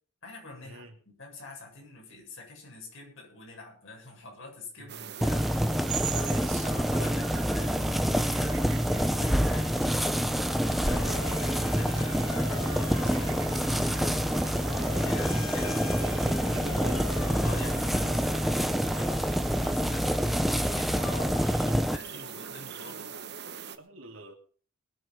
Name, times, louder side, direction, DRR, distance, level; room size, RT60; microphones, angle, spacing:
voice 1, 0.2-5.7 6.1-10.4 10.7-14.5 15.0-16.3 17.4-23.2, left 3 dB, 60° left, 0 dB, 7.8 m, -46 dB
voice 2, 4.8-5.1 6.2-6.7 11.2-11.5 15.5-17.2 23.8-24.3, right 2 dB, 65° right, 3 dB, 2.9 m, -44 dB
sound 1, 4.9-23.8, right 8 dB, 50° right, 1.2 m, -41 dB
sound 2, 5.2-22.0, equal, ahead, 0.7 m, -27 dB
Motor vehicle (road) / Siren, 10.3-18.9, left 7 dB, 80° left, 0.7 m, -43 dB
21.0 x 8.2 x 5.6 m, 0.43 s
head